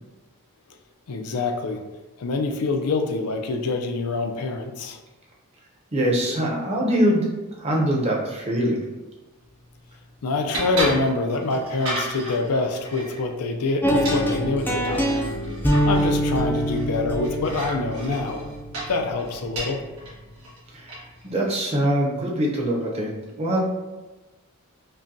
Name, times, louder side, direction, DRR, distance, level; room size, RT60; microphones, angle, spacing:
voice 1, 1.1-1.8 2.2-5.0 10.2-15.3 15.8-18.4 18.9-19.8, left 3 dB, 85° left, 5 dB, 0.5 m, -26 dB
voice 2, 5.9-7.3 7.6-8.8 20.7-23.1 23.4-23.6, equal, 30° right, -2 dB, 0.7 m, -23 dB
sound 1, 9.4-21.3, right 1 dB, 80° right, 1.5 m, -35 dB
sound 2, 13.8-19.8, equal, 10° left, 0.5 m, -24 dB
5.4 x 2.2 x 2.6 m, 1.1 s
head